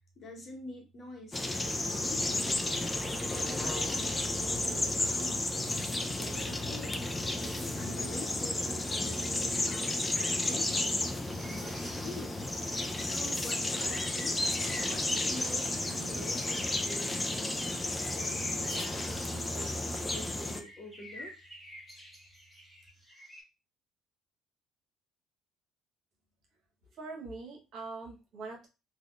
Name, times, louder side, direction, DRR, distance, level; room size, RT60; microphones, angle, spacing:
voice 1, 0.2-2.7 3.3-5.5 6.0-7.0 7.4-11.1 11.4-12.3 12.9-14.4 14.8-17.7 18.1-19.0 19.3-21.3, left 1 dB, 45° left, 1 dB, 1.0 m, -46 dB
sound 1, 1.3-20.6, left 2 dB, 20° left, 0.5 m, -32 dB
sound 2, 10.3-23.4, equal, ahead, 1.2 m, -49 dB
voice 2, 26.8-28.7, right 3 dB, 60° right, 0 dB, 1.0 m, -43 dB
3.4 x 2.3 x 2.4 m, 0.27 s
hypercardioid pair, 55°, 0 cm